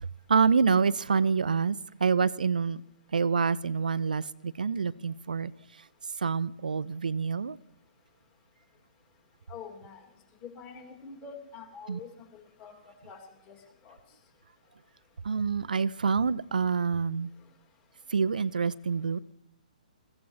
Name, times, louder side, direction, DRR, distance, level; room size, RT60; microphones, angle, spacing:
voice 1, 0.0-2.8 3.1-5.8 6.2-7.6 11.9-12.0 15.2-17.3 18.1-19.2, right 5 dB, 75° right, 0.4 m, -27 dB
voice 2, 9.5-10.0 10.4-12.7 13.0-13.2 13.5-13.6 13.8-14.0, left 6 dB, 30° left, 2.7 m, -45 dB
21.0 x 15.0 x 3.2 m
figure-of-eight pair, 130°, 4 cm